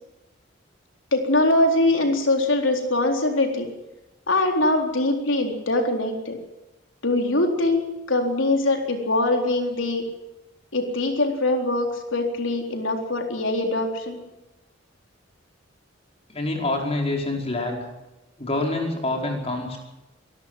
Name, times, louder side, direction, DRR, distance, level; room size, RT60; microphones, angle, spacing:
voice 1, 1.1-3.7 4.3-6.4 7.0-7.8 8.1-10.0 10.7-14.2, left 2 dB, 85° left, 3 dB, 4.0 m, -22 dB
voice 2, 16.3-17.9 18.4-19.8, left 2 dB, 30° left, 1 dB, 5.0 m, -26 dB
24.0 x 13.5 x 9.2 m, 1.0 s
head